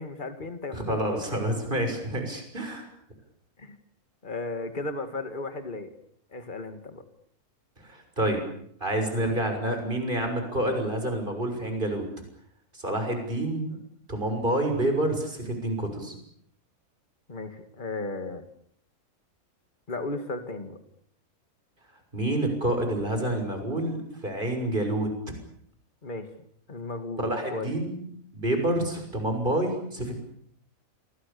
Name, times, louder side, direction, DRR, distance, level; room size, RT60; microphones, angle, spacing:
voice 1, 0.0-1.4 3.6-3.8 4.2-5.9 6.3-7.0 17.3-18.4 19.9-20.8 26.0-26.3 26.7-27.2 27.5-27.7, left 2 dB, 35° left, 8 dB, 2.5 m, -35 dB
voice 2, 0.7-2.9 7.8-8.4 8.8-12.1 12.7-13.8 14.1-16.2 22.1-25.4 27.2-28.0 28.3-30.2, right 1 dB, 35° right, 5 dB, 6.7 m, -28 dB
29.5 x 23.5 x 7.1 m, 0.67 s
omnidirectional pair, 1.5 m